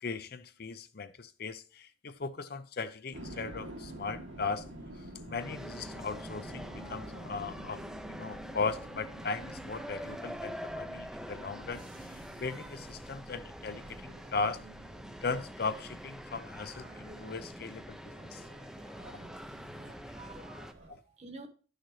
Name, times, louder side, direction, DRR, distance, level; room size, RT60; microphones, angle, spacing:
voice 1, 0.0-4.7 5.3-14.6 15.2-18.4 20.1-20.2 20.9-21.0, left 4 dB, 50° left, 0.6 m, -38 dB
sound 1, 3.1-20.9, right 1 dB, 80° right, 2.2 m, -49 dB
sound 2, 5.4-20.7, equal, 5° right, 0.5 m, -45 dB
voice 2, 18.1-18.9 19.7-21.5, right 2 dB, 35° right, 1.2 m, -52 dB
11.5 x 6.5 x 3.2 m
head